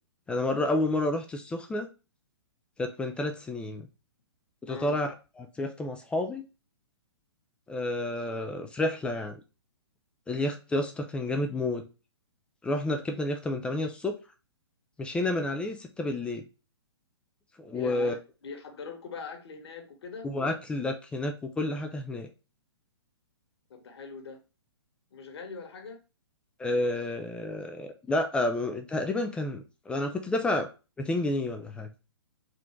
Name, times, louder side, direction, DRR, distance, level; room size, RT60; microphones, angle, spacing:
voice 1, 0.3-1.9 2.8-3.9 4.6-6.5 7.7-9.4 10.3-11.8 12.6-14.2 15.0-16.4 17.6-18.2 20.2-22.3 26.6-30.7 31.0-31.9, left 2 dB, 5° left, 5 dB, 0.3 m, -30 dB
voice 2, 17.7-20.3 23.7-24.4 25.1-26.0, left 5 dB, 65° left, 6 dB, 1.2 m, -42 dB
3.8 x 2.5 x 4.4 m, 0.31 s
hypercardioid pair, 135°, 14 cm